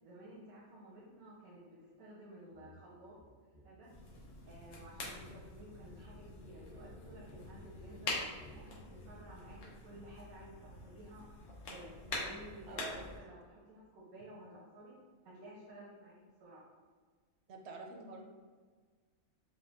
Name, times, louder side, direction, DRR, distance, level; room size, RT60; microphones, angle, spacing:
voice 1, 0.0-3.2 3.6-3.9 4.5-8.2 8.5-11.2 11.6-15.0 15.2-16.1 16.4-16.6, right 1 dB, 90° right, -6 dB, 1.3 m, -54 dB
sound 1, 2.5-2.8 3.1-8.7, equal, 55° left, 1.0 m, -59 dB
sound 2, 3.9-13.2, left 2 dB, 90° left, 1.3 m, -45 dB
voice 2, 12.7-13.1 17.5-18.2, right 3 dB, 65° right, 1 dB, 0.7 m, -47 dB
5.0 x 2.2 x 3.3 m, 1.5 s
omnidirectional pair, 1.5 m